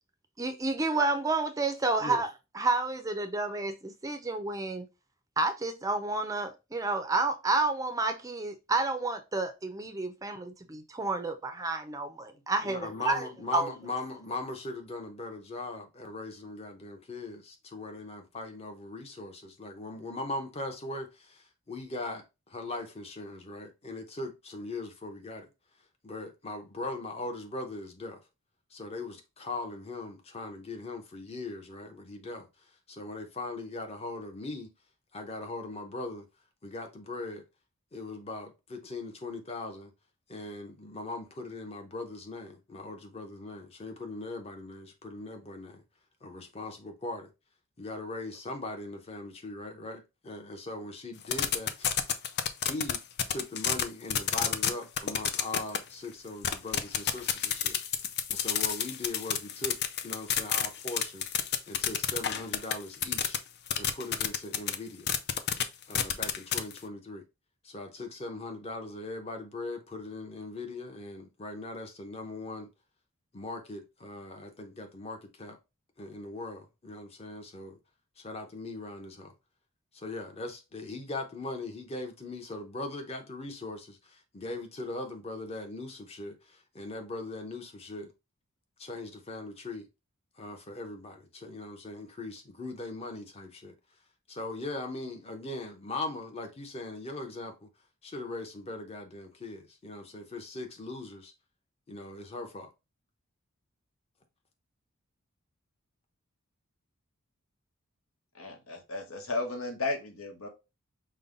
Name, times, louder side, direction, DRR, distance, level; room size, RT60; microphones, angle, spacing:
voice 1, 0.4-2.3 2.5-4.9 5.4-13.3 13.5-13.7, right 3 dB, 15° right, 0.5 m, -30 dB
voice 2, 12.6-25.5 26.0-28.2 28.7-32.5 32.9-34.7 35.1-36.3 36.6-37.4 37.9-39.9 40.3-45.8 46.2-47.3 47.8-51.9 52.6-53.0 53.3-57.8 58.3-59.8 60.0-61.3 61.7-63.4 63.8-65.1 65.9-67.2 67.6-72.7 73.3-75.6 76.0-77.8 78.2-79.3 79.9-88.1 88.8-89.8 90.4-93.7 94.3-97.7 98.0-101.3 101.9-102.7, left 2 dB, 30° left, 0.8 m, -40 dB
sound 1, 51.2-53.8 54.1-54.7 55.0-55.8 56.4-63.4 63.7-64.8 65.1-65.6 65.9-66.8, left 9 dB, 50° left, 0.4 m, -29 dB
voice 3, 108.3-110.5, left 3 dB, 80° left, 1.0 m, -34 dB
5.3 x 2.2 x 3.8 m
head